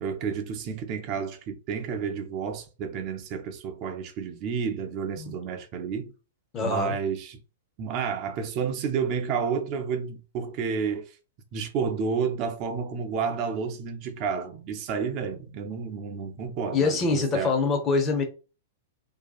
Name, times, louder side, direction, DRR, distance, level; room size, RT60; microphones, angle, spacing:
voice 1, 0.0-6.1 6.6-7.4 7.8-11.2 11.5-17.6, right 6 dB, 40° right, 0.4 m, -30 dB
voice 2, 6.5-6.9 16.7-18.2, left 4 dB, 30° left, 0.7 m, -25 dB
2.6 x 2.2 x 2.3 m
hypercardioid pair, 105°, 0 cm